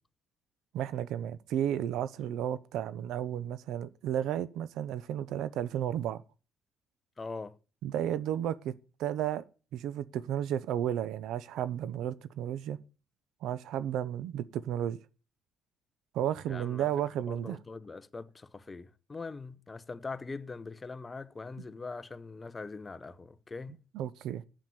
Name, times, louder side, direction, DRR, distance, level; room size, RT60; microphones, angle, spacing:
voice 1, 0.7-6.2 7.8-8.7 9.0-9.4 9.7-12.8 13.4-15.0 16.1-17.6 23.9-24.4, right 10 dB, 75° right, 0.8 m, -33 dB
voice 2, 7.2-7.6 16.5-16.9 17.3-23.8, left 4 dB, 20° left, 0.8 m, -42 dB
9.0 x 7.1 x 7.8 m
cardioid pair, 140°, 0 cm